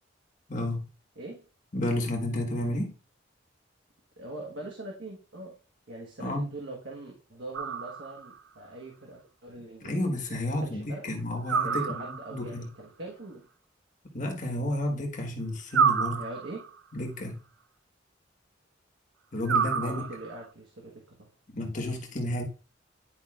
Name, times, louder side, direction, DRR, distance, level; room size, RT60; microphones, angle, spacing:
voice 1, 0.5-0.8 1.7-2.9 6.2-6.4 9.8-12.7 14.1-16.3 16.9-17.4 19.3-20.0 21.5-22.4, left 1 dB, 40° left, 1.5 m, -31 dB
voice 2, 4.2-5.5 5.9-10.1 10.6-11.0 11.6-13.4 16.1-16.6 19.8-21.3, right 2 dB, 70° right, 1.4 m, -42 dB
sound 1, 7.5-8.4 11.5-12.5 15.7-16.8 19.5-20.5, right 6 dB, 90° right, 0.5 m, -28 dB
10.5 x 5.2 x 2.4 m
head